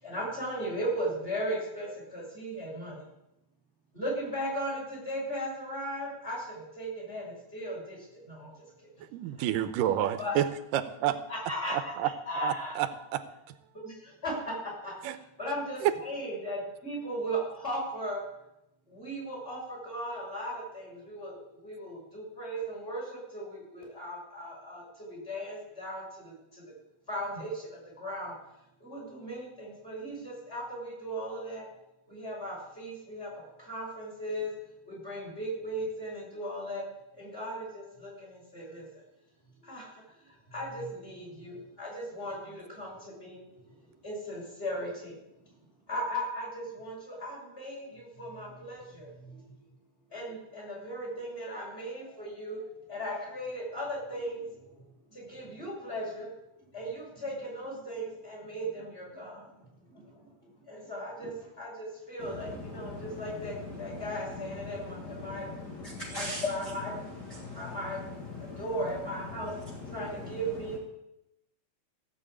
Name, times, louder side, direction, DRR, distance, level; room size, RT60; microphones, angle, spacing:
voice 1, 0.0-3.0 3.9-8.9 10.2-10.3 11.3-11.8 12.3-12.8 13.8-15.1 15.4-18.2 18.9-26.6 27.1-28.4 28.8-31.7 32.1-34.5 34.9-36.8 37.1-38.9 39.6-45.1 45.5-45.6 45.9-49.7 50.1-52.6 52.9-56.5 56.7-65.5 66.1-66.9 67.5-68.1 68.4-69.5 69.9-70.8, equal, 15° left, -2 dB, 6.8 m, -37 dB
voice 2, 9.0-10.5 10.7-11.2 11.7-12.1 12.4-13.6 15.0-15.2 15.8-15.9, right 12 dB, 85° right, 12 dB, 2.4 m, -29 dB
voice 3, 62.2-67.0 67.3-67.8 68.3-68.6 69.3-70.4, left 3 dB, 40° left, 0 dB, 1.9 m, -40 dB
16.0 x 7.1 x 8.5 m, 0.88 s
omnidirectional pair, 3.8 m